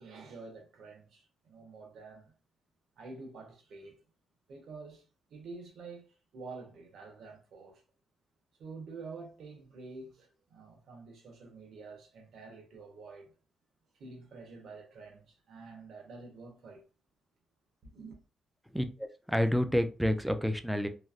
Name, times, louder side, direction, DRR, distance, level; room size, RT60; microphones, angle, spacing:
voice 1, 0.0-2.3 3.0-4.0 4.5-5.0 5.3-7.8 8.6-13.4 13.9-16.8 17.8-18.2, right 4 dB, 75° right, 1.0 m, -48 dB
voice 2, 18.7-20.9, equal, ahead, 0.4 m, -29 dB
3.1 x 2.4 x 2.4 m
cardioid pair, 105°, 0 cm